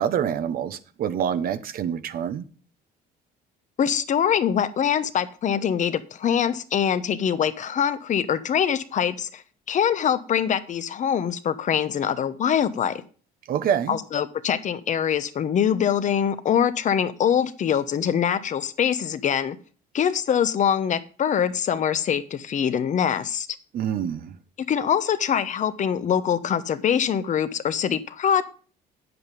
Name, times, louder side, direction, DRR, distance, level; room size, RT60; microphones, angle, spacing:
voice 1, 0.0-2.4 13.5-14.0 23.7-24.4, right 8 dB, 60° right, 1.1 m, -26 dB
voice 2, 3.8-13.0 13.9-19.6 19.9-23.5 24.6-28.4, left 8 dB, 45° left, 1.0 m, -24 dB
9.6 x 7.9 x 5.2 m
cardioid pair, 110°, 17 cm